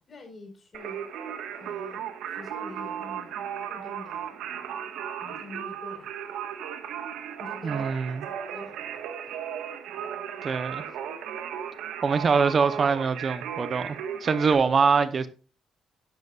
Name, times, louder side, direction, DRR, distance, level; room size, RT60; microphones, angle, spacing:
voice 1, 0.1-1.1 1.6-3.4 3.7-4.4 5.2-6.1 7.4-9.5, left 3 dB, 40° left, 4.7 m, -46 dB
Singing, 0.7-14.5, right 9 dB, 90° right, 1.5 m, -36 dB
voice 2, 7.6-8.2 10.4-10.8 12.0-15.3, right 5 dB, 45° right, 0.8 m, -24 dB
12.0 x 11.0 x 2.4 m
cardioid pair, 90°, 0 cm